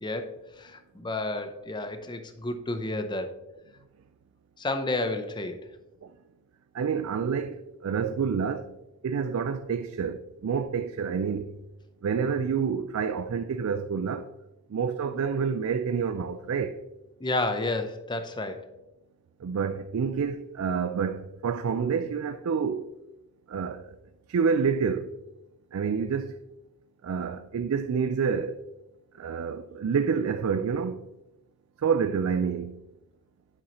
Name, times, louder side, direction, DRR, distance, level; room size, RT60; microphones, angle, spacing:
voice 1, 0.0-3.3 4.6-5.6 17.2-18.7, left 2 dB, 20° left, 0.5 m, -31 dB
voice 2, 6.7-8.7 9.0-11.5 12.0-14.3 14.7-16.8 19.4-22.8 23.5-24.0 24.3-25.1 25.7-26.4 27.0-28.6 29.2-31.0 31.8-32.8, right 6 dB, 70° right, 0.3 m, -28 dB
9.0 x 5.5 x 3.0 m
head